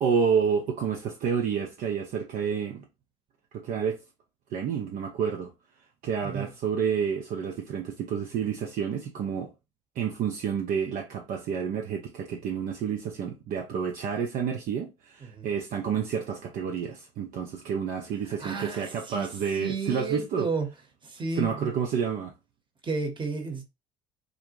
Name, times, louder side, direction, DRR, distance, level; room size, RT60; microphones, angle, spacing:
voice 1, 0.0-2.9 3.5-4.0 4.5-5.5 6.0-9.5 10.0-20.5 21.4-22.3, right 7 dB, 55° right, 0.5 m, -29 dB
voice 2, 6.2-6.5 15.2-15.5 18.4-19.3 19.5-20.7 21.0-21.7 22.8-23.6, right 3 dB, 30° right, 1.0 m, -32 dB
2.5 x 2.1 x 3.0 m
hypercardioid pair, 60°, 17 cm